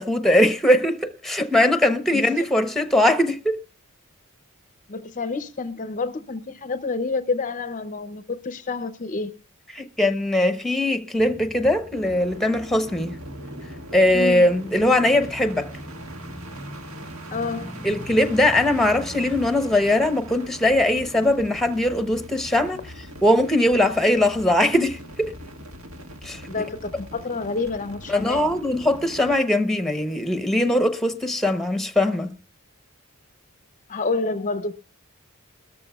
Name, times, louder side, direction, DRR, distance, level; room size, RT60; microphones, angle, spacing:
voice 1, 0.0-3.6 9.7-13.1 13.9-15.7 17.8-22.8 23.2-25.3 26.2-26.4 28.1-32.3, left 1 dB, ahead, 0.9 m, -20 dB
voice 2, 2.1-2.5 4.9-9.3 14.1-14.5 17.3-17.7 26.5-28.5 33.9-34.7, left 3 dB, 35° left, 0.6 m, -28 dB
Male speech man speaking / Motorcycle / Idling, 11.2-20.1, equal, 25° right, 3.9 m, -41 dB
sound 1, 11.9-29.4, equal, 70° right, 1.8 m, -41 dB
21.0 x 13.5 x 2.3 m
head